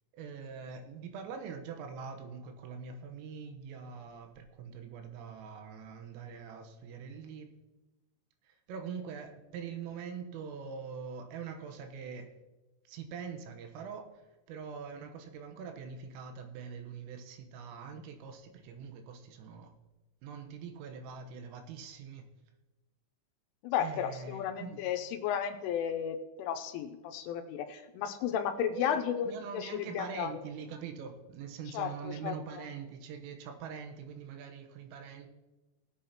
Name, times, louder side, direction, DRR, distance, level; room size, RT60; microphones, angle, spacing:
voice 1, 0.1-7.5 8.5-12.3 12.9-14.1 14.5-19.7 20.2-22.3 23.8-24.9 28.7-35.3, right 6 dB, 85° right, 5 dB, 3.6 m, -43 dB
voice 2, 23.6-29.3 29.5-30.4 31.7-32.3, left 9 dB, 85° left, 7 dB, 3.0 m, -33 dB
20.0 x 8.3 x 2.9 m, 1.1 s
omnidirectional pair, 5.9 m